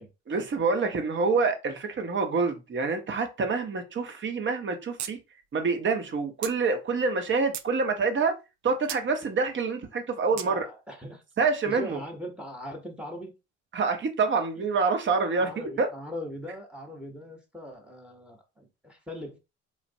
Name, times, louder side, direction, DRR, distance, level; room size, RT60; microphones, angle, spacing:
voice 1, 0.3-5.2 5.5-8.3 8.6-10.6 11.4-12.0 13.7-15.9, right 4 dB, 35° right, 0.9 m, -26 dB
sound 1, 5.0-5.1 5.4-5.5 6.4-6.6 7.2-7.7 8.9-9.0 10.4-10.5, right 10 dB, 55° right, 0.5 m, -35 dB
voice 2, 10.3-11.2 11.6-13.3 14.6-14.7 15.4-19.4, equal, 5° right, 1.0 m, -40 dB
3.2 x 2.4 x 2.6 m
hypercardioid pair, 65°, 34 cm